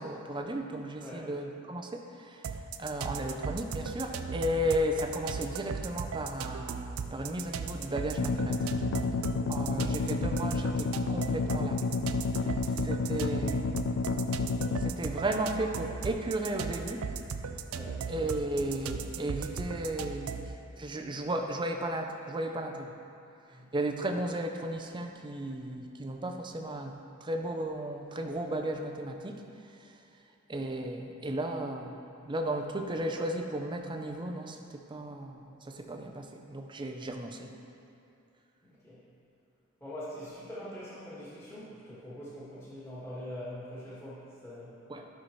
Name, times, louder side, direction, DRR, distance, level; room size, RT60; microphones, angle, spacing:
voice 1, 0.0-2.5 2.8-8.7 9.5-11.9 12.4-12.5 12.8-13.8 14.8-17.1 18.1-20.4 20.8-22.9 23.7-27.0 27.2-29.4 30.5-32.0 32.2-37.5 44.9-45.1, right 1 dB, 25° right, 4 dB, 0.6 m, -34 dB
voice 2, 1.0-1.3 12.4-12.9 17.7-18.0 23.5-23.7 38.6-39.0 39.8-44.8, equal, 15° left, -10 dB, 1.8 m, -44 dB
sound 1, 2.4-20.6, right 5 dB, 85° right, 0.4 m, -37 dB
sound 2, 8.2-14.9, left 3 dB, 65° left, 0.4 m, -30 dB
12.5 x 5.7 x 3.2 m, 2.7 s
head